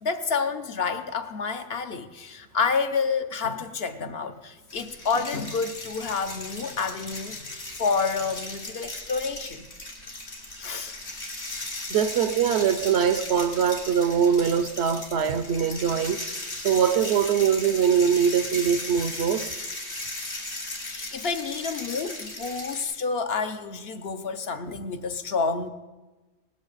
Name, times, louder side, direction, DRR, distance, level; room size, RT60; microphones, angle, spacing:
voice 1, 0.0-7.5 7.8-9.6 10.6-10.9 20.8-25.7, left 5 dB, 55° left, 0.9 m, -29 dB
sound 1, 4.7-22.8, left 2 dB, 80° left, 3.4 m, -37 dB
voice 2, 11.9-16.2 16.6-19.5, right 7 dB, 65° right, 0.9 m, -22 dB
19.0 x 15.5 x 4.0 m
omnidirectional pair, 1.3 m